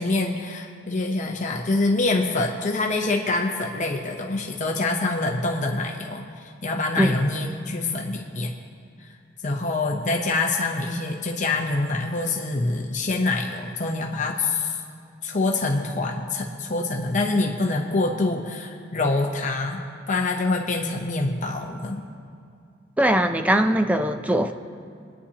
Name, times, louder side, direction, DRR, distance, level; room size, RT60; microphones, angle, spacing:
voice 1, 0.0-8.5 9.0-9.2 9.4-14.8 15.2-19.8 20.1-22.1, left 2 dB, 40° left, 1 dB, 0.8 m, -25 dB
voice 2, 23.0-24.5, right 1 dB, 5° right, 7 dB, 0.5 m, -20 dB
24.5 x 9.8 x 2.9 m, 2.3 s
head